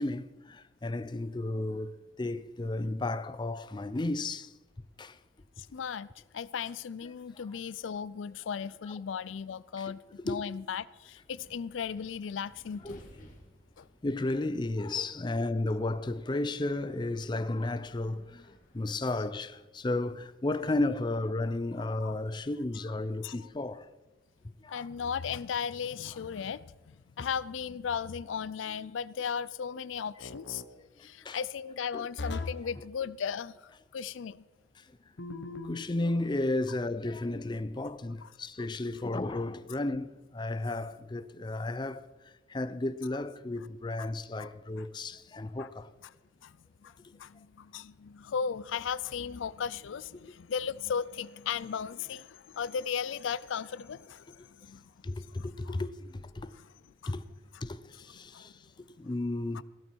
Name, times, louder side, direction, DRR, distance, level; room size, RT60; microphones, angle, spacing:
voice 1, 0.0-4.5 5.0-5.2 7.3-7.4 8.9-9.0 9.8-9.9 10.3-10.4 12.8-13.1 14.0-23.9 24.6-24.9 30.8-31.4 31.9-32.1 34.8-34.9 35.6-45.9 55.0-56.5 57.1-57.2 57.6-58.7 59.0-59.6, left 2 dB, 25° left, 0.5 m, -33 dB
voice 2, 5.6-13.0 13.8-13.9 22.0-22.2 23.2-23.4 24.7-30.6 31.0-34.4 38.2-38.3 44.0-44.1 44.4-44.5 44.8-44.9 45.6-45.7 46.4-46.6 46.8-54.9 55.2-55.8 57.0-57.2 58.3-58.5 59.5-59.6, left 7 dB, 85° left, 0.4 m, -36 dB
Wind, 10.7-20.2, equal, 45° left, 2.8 m, -60 dB
sound 1, 27.2-27.7 30.2-30.7 32.2-32.7 35.2-35.9, left 3 dB, 65° left, 0.9 m, -39 dB
16.5 x 12.5 x 4.6 m
head